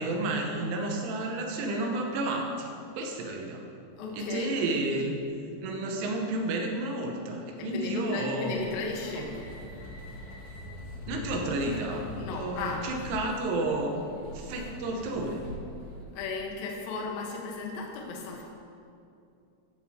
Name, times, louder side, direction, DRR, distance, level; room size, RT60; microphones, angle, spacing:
voice 1, 0.0-2.7 3.0-3.6 4.1-5.2 5.6-8.7 9.2-9.3 11.1-14.0 14.3-15.4, right 2 dB, 75° right, 1 dB, 3.3 m, -31 dB
voice 2, 4.0-4.6 7.6-9.3 12.2-12.9 16.2-18.4, left 4 dB, 85° left, 0 dB, 2.0 m, -35 dB
sound 1, 8.4-16.0, left 1 dB, 50° left, 2.5 m, -43 dB
11.5 x 11.0 x 2.8 m, 2.5 s
omnidirectional pair, 5.9 m